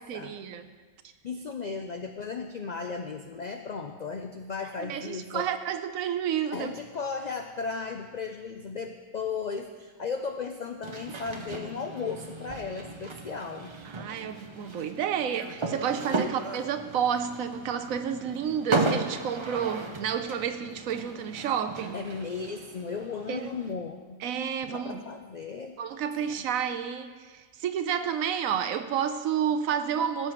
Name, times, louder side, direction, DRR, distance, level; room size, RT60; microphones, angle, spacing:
voice 1, 0.1-0.7 4.8-6.7 13.8-22.0 23.3-23.5 24.2-25.0 25.8-30.3, right 8 dB, 85° right, 9 dB, 1.1 m, -30 dB
voice 2, 1.2-5.5 6.5-13.7 16.0-16.3 21.9-24.2 24.7-25.8 26.3-26.5, left 5 dB, 75° left, 5 dB, 0.4 m, -35 dB
sound 1, 10.8-23.7, right 3 dB, 30° right, 0.5 m, -35 dB
17.0 x 7.6 x 3.0 m, 1.4 s
omnidirectional pair, 1.4 m